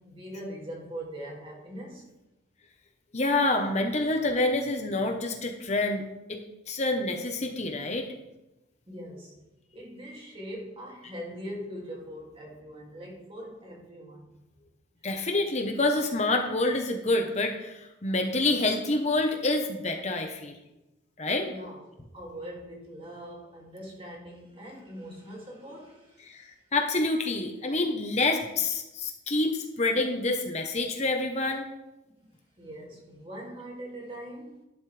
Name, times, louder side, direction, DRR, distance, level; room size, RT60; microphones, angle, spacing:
voice 1, 0.0-2.0 8.9-9.4 9.7-14.3 21.5-21.8 22.1-26.3 32.2-34.6, equal, 30° right, -2 dB, 2.6 m, -42 dB
voice 2, 3.1-6.0 6.3-8.1 15.0-20.5 21.2-21.5 26.2-31.7, left 2 dB, 35° left, 3 dB, 1.1 m, -27 dB
11.5 x 11.5 x 3.4 m, 0.97 s
head